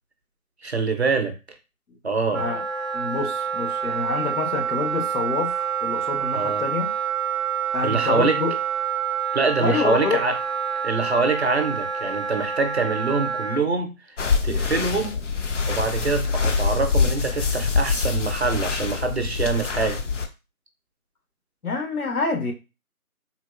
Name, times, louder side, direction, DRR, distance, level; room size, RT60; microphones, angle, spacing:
voice 1, 0.6-1.4 2.0-2.4 6.3-6.6 7.8-8.4 9.3-10.3 10.8-14.2 14.4-15.2 15.7-20.0, right 4 dB, 50° right, 0.5 m, -24 dB
Wind instrument woodwind instrument, 2.3-13.6, right 7 dB, ahead, 0.4 m, -27 dB
voice 2, 2.9-6.9 7.7-8.5 9.6-10.2 21.6-22.5, left 4 dB, 80° left, 1.1 m, -27 dB
sound 1, 14.2-20.3, left 5 dB, 55° left, 0.5 m, -24 dB
3.7 x 2.3 x 2.3 m
figure-of-eight pair, 165°, 44 cm